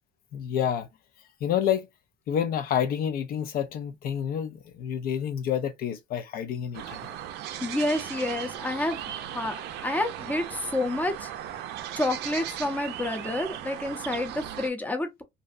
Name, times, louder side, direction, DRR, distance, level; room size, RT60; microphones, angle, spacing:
voice 1, 0.3-0.9 1.4-1.9 2.3-7.1, left 9 dB, 60° left, 0.4 m, -28 dB
sound 1, 6.7-14.7, right 10 dB, 80° right, 0.4 m, -37 dB
voice 2, 7.6-11.3 11.9-15.2, left 1 dB, 10° left, 0.6 m, -29 dB
2.6 x 2.0 x 2.4 m
cardioid pair, 110°, 17 cm